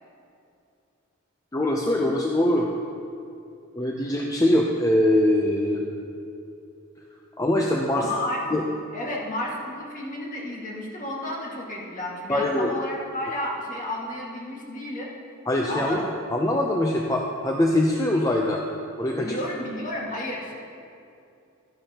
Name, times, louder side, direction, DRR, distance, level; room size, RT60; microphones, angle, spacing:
voice 1, 1.5-2.7 3.8-5.9 7.4-8.0 8.5-8.6 12.3-12.7 15.5-16.0 16.3-18.6 19.0-19.4, left 1 dB, 15° left, -1 dB, 0.6 m, -22 dB
voice 2, 7.9-8.4 8.9-15.1 15.7-16.0 19.2-20.5, left 1 dB, 40° left, -3 dB, 1.8 m, -32 dB
13.0 x 10.5 x 2.9 m, 2.6 s
head